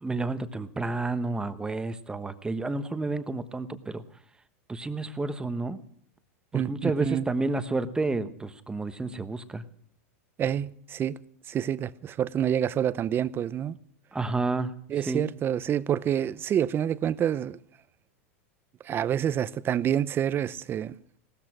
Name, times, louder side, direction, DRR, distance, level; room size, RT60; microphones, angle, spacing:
voice 1, 0.0-4.0 4.7-5.8 6.5-9.6 14.1-14.8 15.1-15.3, right 3 dB, 10° right, 1.1 m, -30 dB
voice 2, 6.5-7.3 10.4-11.2 11.5-13.8 14.9-17.6 18.8-20.9, right 9 dB, 30° right, 0.7 m, -27 dB
17.5 x 13.5 x 6.0 m
hypercardioid pair, 115°, 8 cm